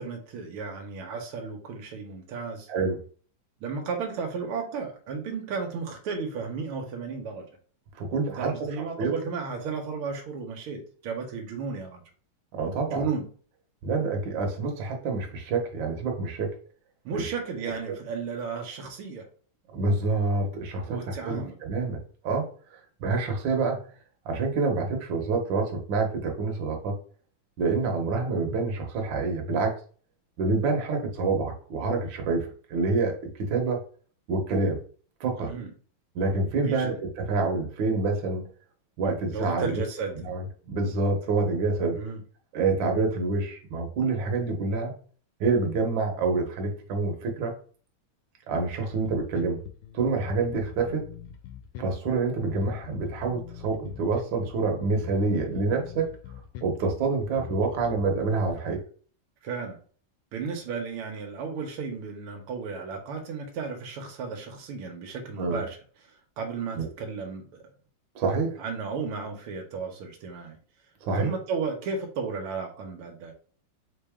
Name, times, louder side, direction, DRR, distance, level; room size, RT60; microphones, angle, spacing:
voice 1, 0.0-2.7 3.6-7.5 8.3-12.0 12.9-13.3 17.0-19.2 20.9-21.6 35.4-35.7 36.6-37.0 39.3-40.1 41.9-42.2 59.4-59.8 60.3-65.8 66.4-67.5 68.6-70.6 71.2-73.3, right 5 dB, 85° right, 3 dB, 1.7 m, -34 dB
voice 2, 8.0-8.5 9.0-9.1 12.5-13.0 13.8-16.5 17.1-17.2 19.7-22.0 22.2-23.8 24.2-26.9 27.6-29.7 30.4-33.8 34.3-34.8 35.2-35.5 36.1-38.4 39.0-39.8 40.1-42.0 42.5-44.9 45.4-47.5 48.5-49.6 49.9-51.0 51.8-56.1 56.6-58.8 65.4-65.6 66.8-66.9 68.1-68.6 71.0-71.3, right 3 dB, 65° right, 2 dB, 1.6 m, -27 dB
Bass guitar, 48.9-58.5, left 10 dB, 85° left, 1.5 m, -42 dB
3.9 x 3.6 x 3.5 m, 0.43 s
omnidirectional pair, 2.3 m